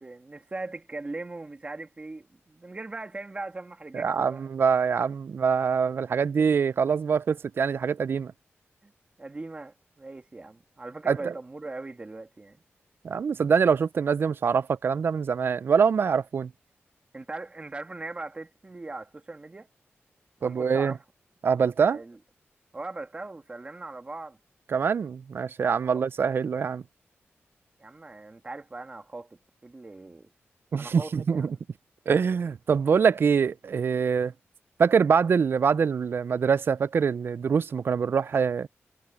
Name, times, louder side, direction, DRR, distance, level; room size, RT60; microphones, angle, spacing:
voice 1, 0.0-4.5 6.4-6.5 8.8-8.9 9.2-12.6 17.1-19.7 20.4-21.0 21.9-22.2 22.7-24.4 25.8-26.0 27.8-30.3 30.7-31.5, right 2 dB, 25° right, 2.7 m, -40 dB
voice 2, 3.9-8.3 11.1-11.3 13.0-16.5 20.4-20.9 21.4-22.0 24.7-26.8 30.7-31.5 32.1-34.3 34.8-38.7, right 6 dB, 55° right, 0.4 m, -24 dB
wide cardioid pair, 125°, 5 cm